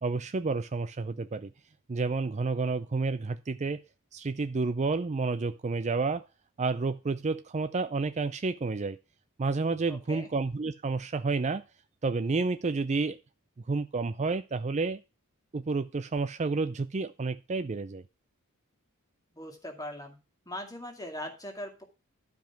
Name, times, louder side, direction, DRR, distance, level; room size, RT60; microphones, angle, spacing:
voice 1, 0.0-1.5 1.9-3.8 4.1-6.2 6.6-9.0 9.4-11.6 12.0-13.2 13.7-15.0 15.5-18.0, right 3 dB, 30° right, 0.4 m, -30 dB
voice 2, 9.9-10.3 19.3-20.2 20.5-21.8, left 1 dB, 15° left, 2.2 m, -40 dB
12.0 x 5.1 x 5.8 m
head